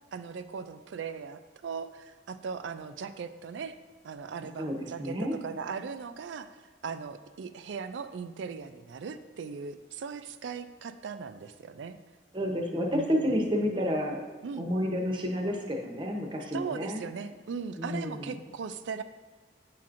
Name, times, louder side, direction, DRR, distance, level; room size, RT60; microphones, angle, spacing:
voice 1, 0.1-3.8 4.0-5.2 5.4-6.5 6.8-12.0 12.9-13.4 14.4-14.7 16.5-19.0, right 6 dB, 85° right, 11 dB, 0.4 m, -38 dB
voice 2, 4.6-5.4 12.3-14.2 14.6-17.0 17.8-18.4, equal, 25° right, 1 dB, 0.7 m, -30 dB
8.2 x 5.8 x 2.5 m, 1.4 s
head